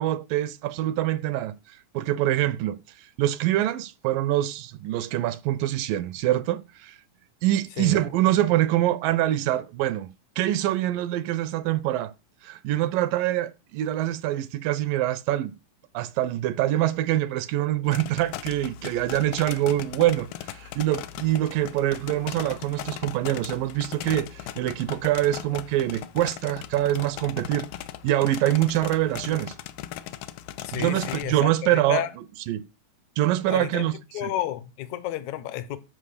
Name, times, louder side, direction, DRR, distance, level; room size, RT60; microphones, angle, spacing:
voice 1, 0.0-1.5 1.9-2.8 3.2-7.0 7.4-10.1 10.4-12.1 12.4-15.5 15.9-27.7 28.0-29.5 30.7-32.1 32.5-32.6 33.2-34.3, right 14 dB, 80° right, 2.2 m, -25 dB
sound 1, 17.9-31.2, left 13 dB, 85° left, 2.4 m, -38 dB
voice 2, 30.6-32.1 33.5-35.8, left 12 dB, 70° left, 2.0 m, -31 dB
11.5 x 5.1 x 6.7 m
omnidirectional pair, 4.0 m